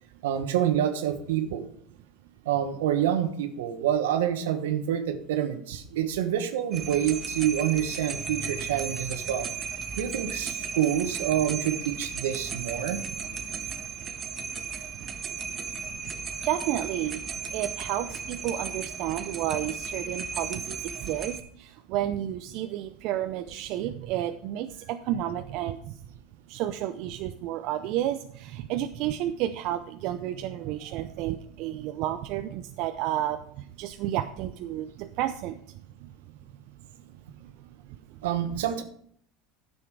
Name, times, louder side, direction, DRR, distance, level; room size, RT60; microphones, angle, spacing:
voice 1, 0.2-1.7 2.4-9.5 10.0-13.0 38.2-38.8, right 10 dB, 85° right, 8 dB, 1.1 m, -27 dB
sound 1, 6.7-21.4, right 5 dB, 35° right, 1.1 m, -35 dB
voice 2, 16.4-17.2 17.5-25.8 26.5-33.4 33.8-35.6, right 12 dB, 65° right, 7 dB, 0.5 m, -31 dB
9.9 x 7.1 x 4.7 m, 0.64 s
supercardioid pair, 95°, 0 cm